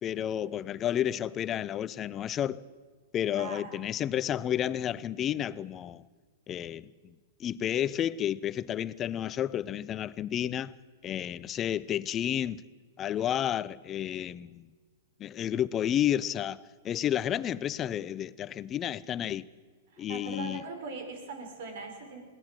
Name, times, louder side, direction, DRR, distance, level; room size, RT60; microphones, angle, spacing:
voice 1, 0.0-2.6 3.1-6.0 6.5-7.1 7.4-10.7 11.0-12.6 13.0-14.7 15.2-19.5 20.0-20.6, left 10 dB, 30° left, 0.6 m, -31 dB
voice 2, 3.3-3.8 19.9-22.2, right 4 dB, 60° right, 5.4 m, -40 dB
21.0 x 17.0 x 7.7 m
hypercardioid pair, 120°, 0 cm